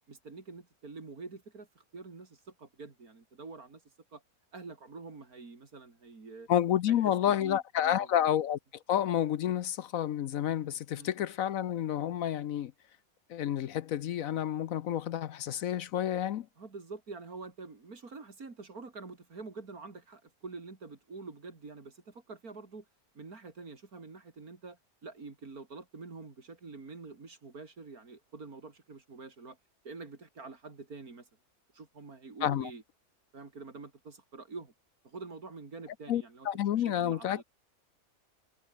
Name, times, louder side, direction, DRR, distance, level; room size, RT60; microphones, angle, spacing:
voice 1, 0.1-3.8 4.1-4.2 4.5-6.5 6.9-8.1 10.9-11.1 16.6-22.9 23.1-29.6 29.8-31.3 31.7-32.8 33.3-34.7 35.0-37.4, right 4 dB, 70° right, 3.7 m, -46 dB
voice 2, 6.5-8.6 8.9-12.7 13.3-16.5 32.4-32.7 36.1-37.4, left 10 dB, 65° left, 1.1 m, -30 dB
omnidirectional pair, 1.6 m